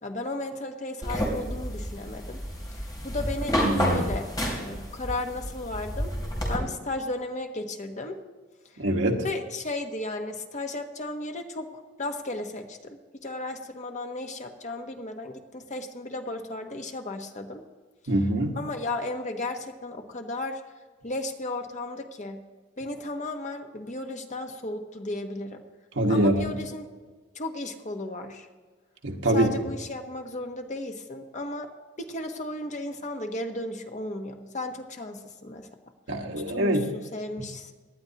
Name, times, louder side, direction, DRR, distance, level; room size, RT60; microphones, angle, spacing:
voice 1, 0.0-2.4 2.7-4.3 4.6-6.1 6.5-8.2 9.2-11.7 12.0-17.6 18.0-18.1 18.6-20.6 21.0-22.4 22.8-25.6 26.1-26.9 27.3-28.5 29.3-31.7 32.0-35.7 36.5-37.7, left 2 dB, 40° left, 4 dB, 1.1 m, -34 dB
sound 1, 1.0-6.6, equal, 20° left, 3.1 m, -30 dB
voice 2, 3.6-4.1 8.8-9.2 18.1-18.6 25.9-26.5 29.0-29.5 36.1-36.9, right 1 dB, 75° right, 2 dB, 1.5 m, -24 dB
18.0 x 11.5 x 2.9 m, 1.4 s
head